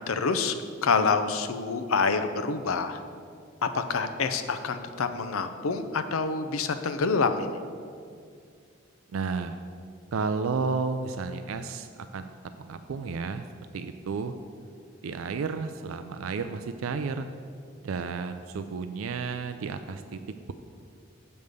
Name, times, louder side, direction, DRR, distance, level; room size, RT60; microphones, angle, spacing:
voice 1, 0.1-0.6 0.8-3.0 3.6-7.5, left 4 dB, 90° left, 10 dB, 0.6 m, -27 dB
voice 2, 9.1-9.6 10.1-11.9 12.1-12.3 12.6-13.4 13.7-14.3 15.0-17.3 17.8-20.2, right 4 dB, 85° right, 9 dB, 0.4 m, -32 dB
7.9 x 5.3 x 6.6 m, 2.2 s
head